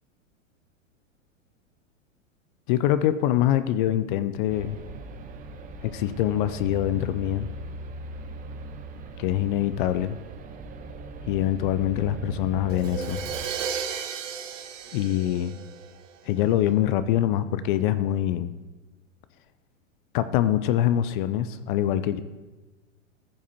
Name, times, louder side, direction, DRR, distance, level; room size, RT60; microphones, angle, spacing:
voice 1, 2.7-4.8 5.8-7.5 9.2-10.2 11.3-13.2 14.9-15.6 16.3-18.5 20.1-22.2, left 12 dB, 40° left, 13 dB, 0.5 m, -24 dB
sound 1, 4.5-13.5, right 1 dB, 20° right, 0.6 m, -39 dB
Crash cymbal, 12.7-16.5, right 7 dB, 75° right, 0.9 m, -34 dB
14.5 x 7.2 x 2.9 m, 1.2 s
hypercardioid pair, 100°, 39 cm